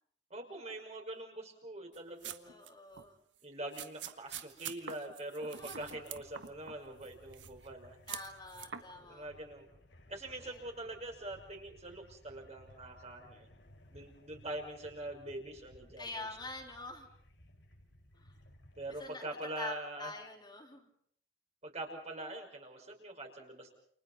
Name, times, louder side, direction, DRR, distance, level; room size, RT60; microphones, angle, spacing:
voice 1, 0.3-2.6 3.4-8.0 8.9-9.7 10.1-13.5 13.9-16.2 18.8-20.1 21.6-23.7, right 1 dB, 40° right, 2 dB, 5.7 m, -44 dB
sound 1, 1.9-2.7 2.9-3.1 3.7-6.8 7.0-7.7 8.1-8.8, right 9 dB, 90° right, 1.5 m, -45 dB
voice 2, 2.4-3.2 5.5-5.9 8.1-9.3 10.4-10.6 16.0-17.1 18.2-18.3 19.0-20.9, left 2 dB, 25° left, 0 dB, 3.7 m, -46 dB
sound 2, 5.6-19.0, equal, 85° left, 4.8 m, -60 dB
29.5 x 28.5 x 4.2 m, 0.62 s
head